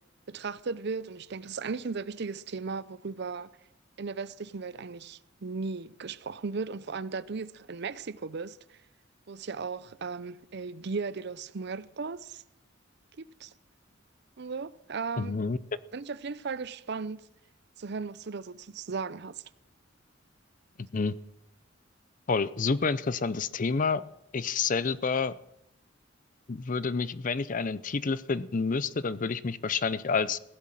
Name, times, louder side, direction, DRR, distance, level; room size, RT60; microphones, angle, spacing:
voice 1, 0.3-3.5 4.0-8.8 9.3-12.4 13.2-13.5 14.4-15.4 15.9-17.2 17.8-19.4, right 4 dB, 55° right, 0.6 m, -36 dB
voice 2, 15.2-15.8 20.8-21.1 22.3-24.0 24.3-25.3 26.5-30.4, left 4 dB, 40° left, 0.5 m, -29 dB
16.5 x 11.5 x 7.5 m
head